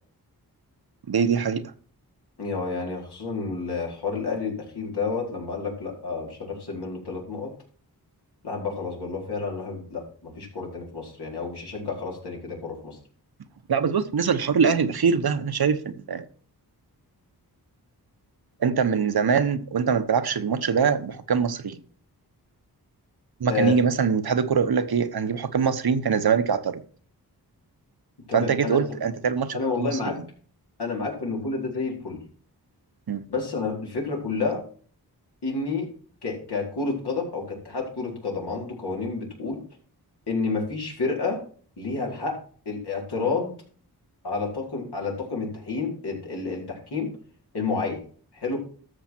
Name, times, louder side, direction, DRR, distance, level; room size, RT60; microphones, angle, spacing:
voice 1, 1.1-1.6 13.7-16.2 18.6-21.8 23.4-26.8 28.3-30.1 33.1-33.2, right 6 dB, 70° right, 1.1 m, -23 dB
voice 2, 2.4-7.5 8.4-13.0 23.5-23.8 28.3-28.8 29.5-30.2 30.8-32.2 33.3-34.6 35.4-35.9 36.2-39.6 40.3-41.4 41.8-42.4 42.7-43.5 44.2-47.1 47.5-48.0 48.3-48.6, left 4 dB, 80° left, 4.3 m, -30 dB
13.0 x 6.9 x 4.5 m
cardioid pair, 55°, 39 cm